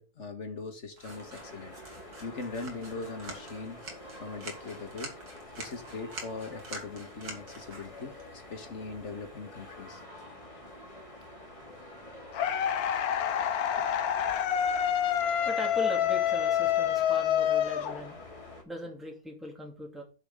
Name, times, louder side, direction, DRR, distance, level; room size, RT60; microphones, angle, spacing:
voice 1, 0.0-1.7 2.2-3.8 4.2-5.1 5.6-10.0 13.8-13.9, left 4 dB, 50° left, 1.9 m, -40 dB
sound 1, 0.9-10.0, right 2 dB, 80° right, 2.9 m, -47 dB
sound 2, 1.1-18.6, left 1 dB, 20° left, 2.5 m, -48 dB
sound 3, 12.3-18.4, left 9 dB, 75° left, 1.3 m, -27 dB
voice 2, 15.5-18.2 18.7-20.0, equal, ahead, 2.4 m, -39 dB
7.0 x 6.3 x 6.4 m
omnidirectional pair, 1.6 m